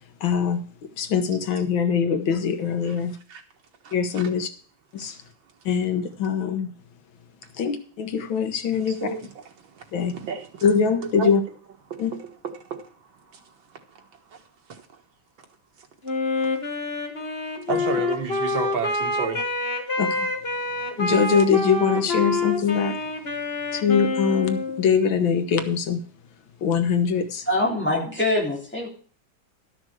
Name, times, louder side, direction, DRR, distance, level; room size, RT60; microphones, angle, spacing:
voice 1, 0.2-0.6 1.0-3.2 3.9-4.5 4.9-5.2 5.7-6.7 7.6-9.1 9.9-10.1 10.6-11.4 12.0-12.1 20.0-20.3 21.0-23.0 23.7-26.0 26.6-27.5, left 6 dB, 85° left, 8 dB, 1.9 m, -23 dB
voice 2, 3.8-4.3 8.7-9.4 9.7-10.6 11.0-11.3 11.9-12.9 13.3-13.4 14.0-14.1 14.3-14.4 14.7-14.8 17.7-19.4, right 5 dB, 85° right, 3 dB, 2.3 m, -32 dB
Wind instrument woodwind instrument, 16.0-24.9, left 3 dB, 35° left, 1.6 m, -27 dB
voice 3, 27.5-28.9, left 1 dB, 5° left, -3 dB, 3.3 m, -24 dB
12.5 x 6.2 x 6.4 m, 0.44 s
omnidirectional pair, 2.1 m